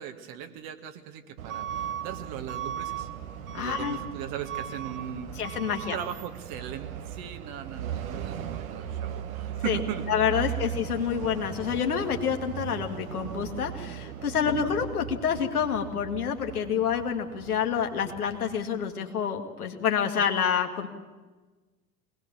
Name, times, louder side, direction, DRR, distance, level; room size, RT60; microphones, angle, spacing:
voice 1, 0.0-3.1 3.6-5.3 5.7-10.0 10.3-10.7 14.4-14.7, right 9 dB, 50° right, 7 dB, 2.1 m, -38 dB
Truck / Alarm, 1.4-18.6, right 9 dB, 70° right, 1.8 m, -37 dB
voice 2, 3.5-4.0 5.4-6.0 9.6-9.8 10.1-20.9, left 7 dB, 75° left, 4 dB, 2.2 m, -28 dB
23.0 x 19.0 x 7.0 m, 1.3 s
figure-of-eight pair, 75°, 44 cm